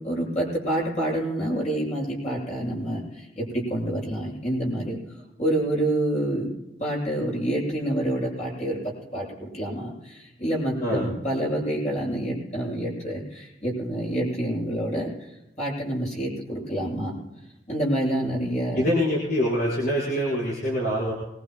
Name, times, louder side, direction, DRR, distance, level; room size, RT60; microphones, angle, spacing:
voice 1, 0.0-5.0 5.4-6.5 6.8-15.3 15.6-17.1 17.7-18.9, right 1 dB, 40° left, -5 dB, 7.9 m, -27 dB
voice 2, 18.7-21.1, equal, 65° left, -7 dB, 5.1 m, -24 dB
25.0 x 21.5 x 2.3 m, 0.98 s
head